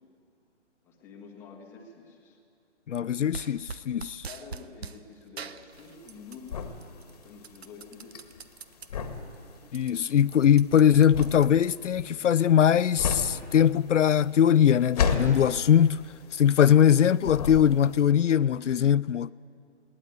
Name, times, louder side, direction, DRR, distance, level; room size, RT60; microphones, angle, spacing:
voice 1, 0.8-2.4 4.0-6.8 7.1-8.5, left 5 dB, 5° left, 1.5 m, -48 dB
voice 2, 2.9-4.2 9.7-16.1 16.3-19.3, left 9 dB, 80° left, 0.5 m, -21 dB
sound 1, 3.3-5.0 5.4-6.5 6.8-8.9 9.3-9.4 9.6-12.1, right 5 dB, 60° right, 1.1 m, -42 dB
sound 2, 5.7-16.9 17.2-18.1, left 6 dB, 30° left, 1.8 m, -32 dB
21.0 x 18.0 x 9.5 m
hypercardioid pair, 165°, 36 cm